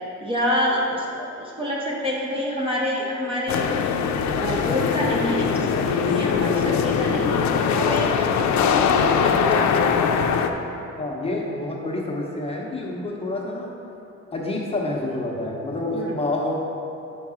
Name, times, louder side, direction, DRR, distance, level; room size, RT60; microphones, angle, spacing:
voice 1, 0.2-1.0 1.4-3.7 4.3-8.1 8.6-9.9 15.9-16.1, equal, 20° right, -4 dB, 0.5 m, -27 dB
sound 1, 3.5-10.5, left 6 dB, 70° left, 0.4 m, -21 dB
voice 2, 11.0-13.7 14.3-16.5, left 2 dB, 20° left, -2 dB, 0.7 m, -28 dB
5.2 x 4.7 x 4.8 m, 2.9 s
cardioid pair, 170°, 29 cm